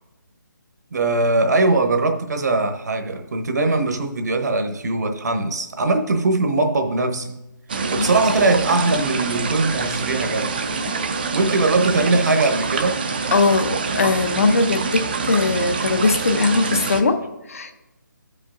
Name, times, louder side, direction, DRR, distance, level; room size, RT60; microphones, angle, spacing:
voice 1, 0.9-7.3 7.9-10.6 11.3-13.0, right 2 dB, 60° right, 0.9 m, -21 dB
sound 1, 7.7-17.0, right 4 dB, 30° right, 0.4 m, -26 dB
voice 2, 13.3-17.7, left 3 dB, 45° left, 0.6 m, -20 dB
15.5 x 5.4 x 2.5 m
hypercardioid pair, 165°, 11 cm